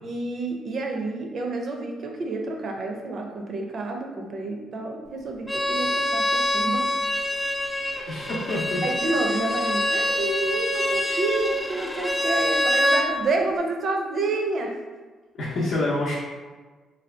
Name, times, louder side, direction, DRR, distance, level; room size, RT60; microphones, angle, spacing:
voice 1, 0.0-7.1 7.9-8.0 8.8-14.8, right 2 dB, 55° right, 2 dB, 0.5 m, -29 dB
Bowed string instrument, 5.5-13.1, equal, 5° left, 0.3 m, -25 dB
voice 2, 8.1-8.8 9.3-9.4 15.4-16.1, left 2 dB, 70° left, -7 dB, 0.6 m, -27 dB
2.6 x 2.3 x 3.3 m, 1.3 s
cardioid pair, 90°, 0 cm